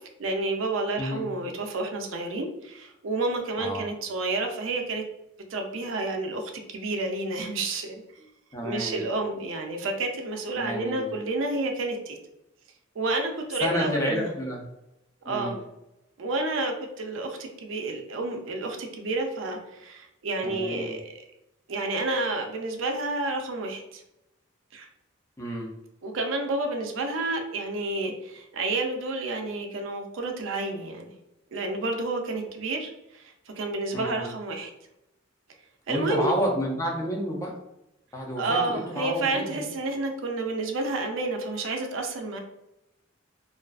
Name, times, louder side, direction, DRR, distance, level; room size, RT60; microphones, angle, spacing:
voice 1, 0.2-5.0 5.5-8.3 8.6-12.2 13.0-14.3 15.3-15.6 16.2-21.0 21.7-24.0 24.7-24.9 26.0-31.1 31.5-34.7 35.9-36.3 38.4-42.4, right 2 dB, 70° right, 3 dB, 0.4 m, -30 dB
voice 2, 8.5-9.1 10.5-11.2 13.6-14.7 15.3-15.6 20.4-21.0 25.4-25.7 33.9-34.3 35.9-37.6 38.1-39.7, equal, 15° left, -2 dB, 0.4 m, -30 dB
2.4 x 2.3 x 2.3 m, 0.89 s
head